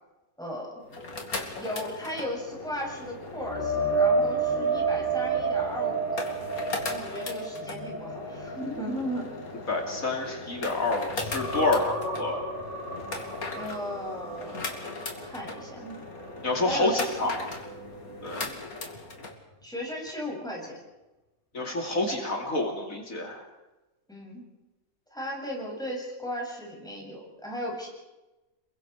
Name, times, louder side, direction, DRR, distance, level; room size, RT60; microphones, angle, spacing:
voice 1, 0.4-0.8 1.6-6.2 6.8-9.3 13.5-16.0 16.7-17.0 19.6-20.8 24.1-24.4 25.1-27.9, equal, 5° left, -3 dB, 7.4 m, -36 dB
sound 1, 0.8-19.3, left 2 dB, 90° left, 3.0 m, -38 dB
sound 2, 3.4-10.8 11.1-15.0 15.4-15.6 18.9-19.0, right 3 dB, 35° left, 4.1 m, -30 dB
voice 2, 9.7-12.5 16.4-17.3 18.2-18.4 21.5-23.4, left 2 dB, 70° left, 1 dB, 3.3 m, -28 dB
29.5 x 22.0 x 4.8 m, 1.1 s
omnidirectional pair, 1.5 m